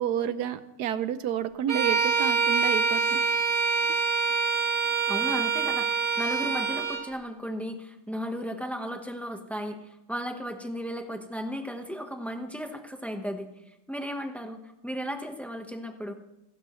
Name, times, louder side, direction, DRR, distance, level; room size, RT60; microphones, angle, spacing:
voice 1, 0.0-3.2, right 9 dB, 70° right, 12 dB, 1.1 m, -30 dB
Bowed string instrument, 1.7-7.1, right 5 dB, 45° right, 2.0 m, -25 dB
voice 2, 5.1-9.8 10.1-13.5 13.9-16.1, equal, ahead, 5 dB, 0.6 m, -35 dB
26.5 x 12.5 x 3.1 m, 0.89 s
omnidirectional pair, 2.1 m